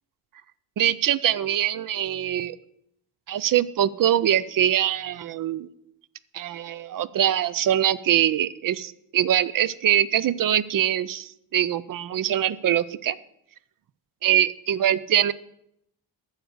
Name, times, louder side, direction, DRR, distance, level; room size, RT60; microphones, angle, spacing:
voice 1, 0.8-2.6 3.3-5.7 6.3-13.2 14.2-15.3, right 11 dB, 50° right, 18 dB, 0.4 m, -23 dB
9.5 x 6.5 x 7.8 m, 0.77 s
wide cardioid pair, 170°, 45 cm